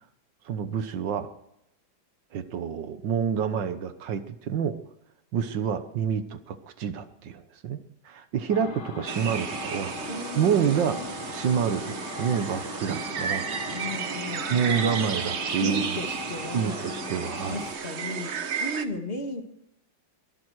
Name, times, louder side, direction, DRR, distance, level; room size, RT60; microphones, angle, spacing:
voice 1, 0.5-1.3 2.3-4.8 5.3-7.8 8.1-10.0 10.4-11.0 11.3-13.5 14.5-16.0 16.5-17.6, right 7 dB, 75° right, 11 dB, 1.7 m, -28 dB
sound 1, 8.5-17.7, left 5 dB, 65° left, 2.1 m, -39 dB
sound 2, 9.1-18.8, right 6 dB, 45° right, 1.0 m, -33 dB
voice 2, 10.1-11.2 13.7-15.1 15.6-16.9 17.5-18.3 18.6-19.4, left 1 dB, 35° left, 5 dB, 1.8 m, -35 dB
22.0 x 12.0 x 4.7 m, 0.79 s
omnidirectional pair, 2.0 m